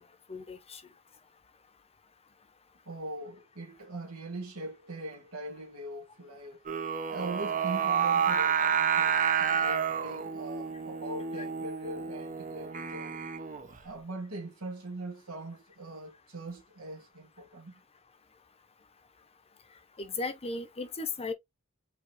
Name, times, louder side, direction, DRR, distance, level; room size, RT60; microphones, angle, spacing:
voice 1, 0.3-0.8 11.4-11.5 20.0-21.3, left 3 dB, 30° left, 0.7 m, -36 dB
voice 2, 2.8-6.6 7.1-13.2 13.8-17.7, right 2 dB, 85° right, 1.6 m, -41 dB
Singing, 6.7-13.8, right 7 dB, 35° right, 0.6 m, -29 dB
4.8 x 3.0 x 3.1 m
head